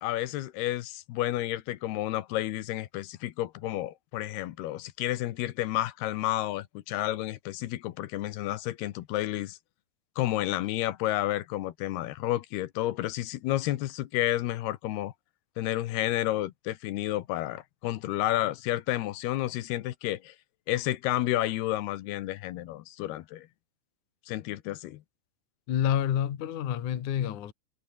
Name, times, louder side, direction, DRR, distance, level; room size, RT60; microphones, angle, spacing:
voice 1, 0.0-9.6 10.2-15.1 15.6-20.3 20.7-23.5 24.3-25.0, left 15 dB, 85° left, 3.1 m, -31 dB
voice 2, 25.7-27.5, left 10 dB, 55° left, 3.0 m, -28 dB
omnidirectional pair, 4.6 m